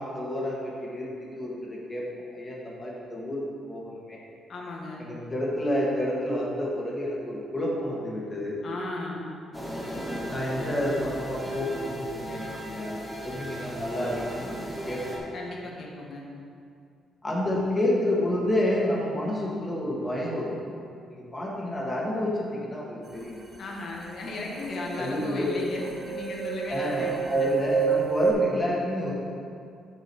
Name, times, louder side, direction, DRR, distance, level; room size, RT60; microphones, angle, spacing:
voice 1, 0.0-2.0 2.3-4.2 5.0-8.6 10.3-15.2 17.2-20.6 21.1-23.4 25.0-25.6 26.7-29.1, left 1 dB, 25° left, -4 dB, 1.8 m, -29 dB
voice 2, 4.5-5.0 8.6-9.3 15.3-16.3 23.6-27.5, left 2 dB, 60° left, -2 dB, 1.5 m, -35 dB
sound 1, 9.5-15.2, equal, ahead, 1.6 m, -36 dB
sound 2, 24.3-24.4 24.6-28.3, right 5 dB, 45° right, 1.3 m, -28 dB
6.7 x 6.2 x 4.5 m, 2.4 s
cardioid pair, 90°, 0 cm